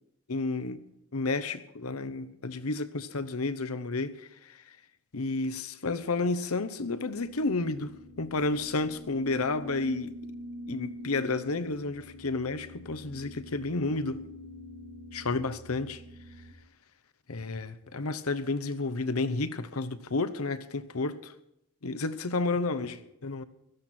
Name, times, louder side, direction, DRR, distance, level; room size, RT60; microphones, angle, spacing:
voice 1, 0.3-0.8 1.1-4.6 5.1-7.9 8.2-10.2 10.7-14.3 15.1-16.0 17.3-21.3 21.8-23.4, left 3 dB, 90° left, 0.9 m, -31 dB
sound 1, 6.4-16.5, left 1 dB, 80° right, 2.0 m, -46 dB
17.5 x 14.0 x 4.4 m
head